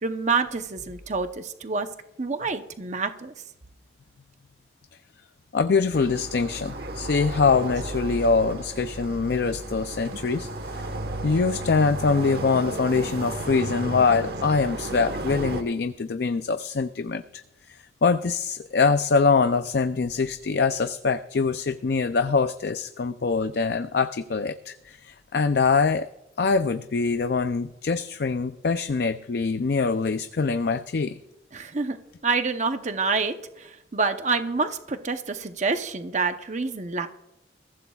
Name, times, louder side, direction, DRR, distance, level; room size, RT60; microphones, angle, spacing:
voice 1, 0.0-1.9 2.2-3.3 31.5-32.0 32.2-37.1, right 4 dB, 40° right, 8 dB, 0.8 m, -27 dB
voice 2, 5.5-10.9 11.2-17.4 17.7-26.1 26.4-31.2, left 4 dB, 60° left, 10 dB, 0.4 m, -24 dB
sound 1, 5.9-15.6, right 1 dB, 60° right, 1.2 m, -33 dB
22.0 x 15.0 x 2.4 m, 0.91 s
head